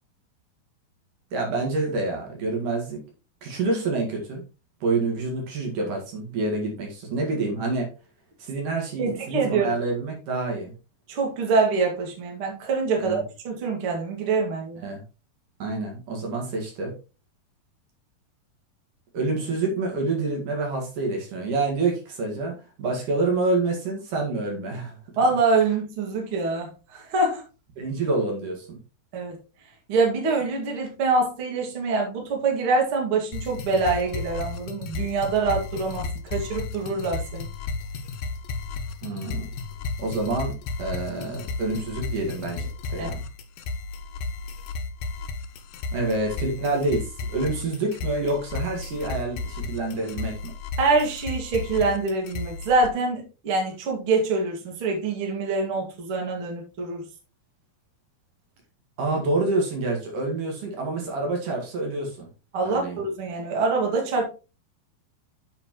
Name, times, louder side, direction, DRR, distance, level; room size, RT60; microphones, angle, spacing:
voice 1, 1.3-3.0 3.4-4.4 4.8-7.9 8.4-10.7 13.0-13.2 14.8-15.0 15.6-16.9 19.1-22.5 22.8-25.0 27.8-28.8 39.0-39.5 40.0-40.5 40.8-43.2 45.9-50.5 59.0-62.3 62.6-63.0, right 3 dB, 60° right, 1 dB, 3.3 m, -27 dB
voice 2, 9.0-9.8 11.1-14.8 25.2-27.4 29.1-29.4 29.9-37.5 43.0-43.1 50.8-57.0 62.5-64.2, right 3 dB, 40° right, 0 dB, 2.6 m, -25 dB
sound 1, 33.3-52.9, left 3 dB, 75° left, 2.3 m, -34 dB
8.4 x 7.4 x 3.1 m, 0.31 s
omnidirectional pair, 4.3 m